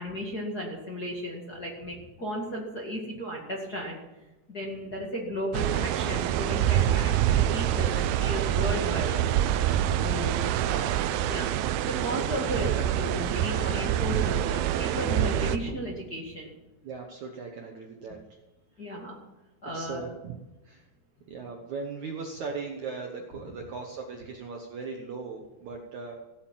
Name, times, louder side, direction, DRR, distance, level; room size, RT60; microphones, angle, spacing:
voice 1, 0.0-4.0 4.5-9.5 10.0-10.9 11.2-11.5 11.8-16.5 18.8-19.2 19.6-20.0, equal, 30° left, -3 dB, 2.0 m, -35 dB
sound 1, 5.5-15.6, right 11 dB, 80° right, 2.2 m, -26 dB
voice 2, 16.8-18.4 18.8-18.9 19.7-20.9 21.3-26.2, right 4 dB, 60° right, 1 dB, 2.0 m, -39 dB
16.5 x 8.9 x 7.6 m, 1.1 s
omnidirectional pair, 4.9 m